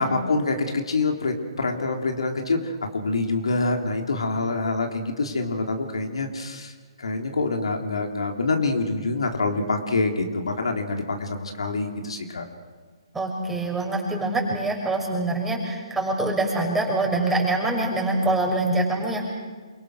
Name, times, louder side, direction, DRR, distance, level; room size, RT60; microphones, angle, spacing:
voice 1, 0.0-6.7 7.0-12.4, left 3 dB, 75° left, 3 dB, 3.4 m, -26 dB
voice 2, 13.1-19.2, right 2 dB, 5° right, -1 dB, 6.1 m, -24 dB
28.5 x 24.0 x 6.3 m, 1.5 s
figure-of-eight pair, 135°, 3 cm